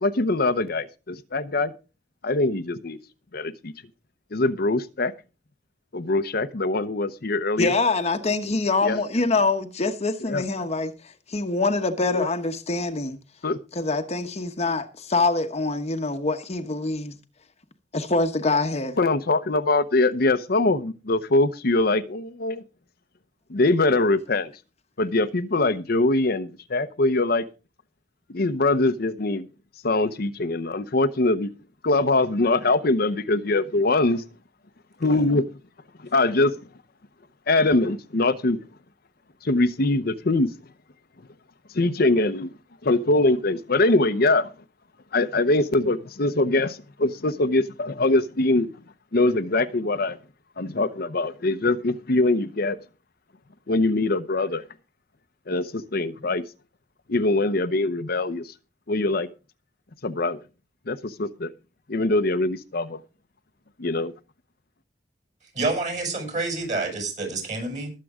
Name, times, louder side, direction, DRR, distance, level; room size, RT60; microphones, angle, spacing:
voice 1, 0.0-1.7 2.2-3.0 3.3-3.7 4.3-5.1 5.9-7.7 8.8-9.0 10.3-10.4 12.1-12.2 13.4-13.6 19.0-22.6 23.5-24.5 25.0-27.4 28.3-29.5 29.8-31.5 31.8-34.2 35.0-35.5 36.1-36.5 37.5-38.6 39.4-40.5 41.7-42.5 42.8-44.5 45.1-48.7 49.1-50.2 50.6-52.8 53.7-54.6 55.5-56.4 57.1-58.5 58.9-59.3 60.0-60.4 60.9-61.5 61.9-63.0 63.8-64.1, left 2 dB, 60° left, 0.8 m, -23 dB
voice 2, 7.6-13.2 13.7-17.2 17.9-19.0, left 3 dB, 35° left, 1.1 m, -25 dB
voice 3, 65.5-67.9, right 3 dB, 45° right, 7.2 m, -28 dB
20.0 x 7.6 x 3.7 m
head